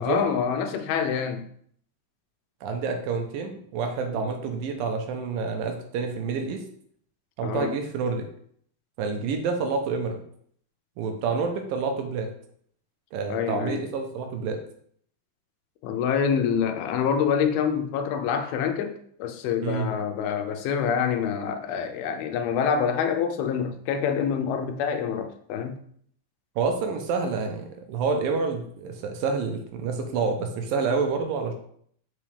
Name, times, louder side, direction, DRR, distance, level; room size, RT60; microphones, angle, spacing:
voice 1, 0.0-1.5 4.2-4.3 7.4-7.8 13.3-13.8 15.8-25.7, left 7 dB, 85° left, 7 dB, 2.6 m, -26 dB
voice 2, 2.6-6.6 7.4-8.3 9.0-10.2 11.0-12.3 13.1-14.6 19.6-19.9 26.6-31.5, right 4 dB, 80° right, 4 dB, 2.4 m, -28 dB
7.3 x 5.4 x 3.4 m, 0.64 s
omnidirectional pair, 4.3 m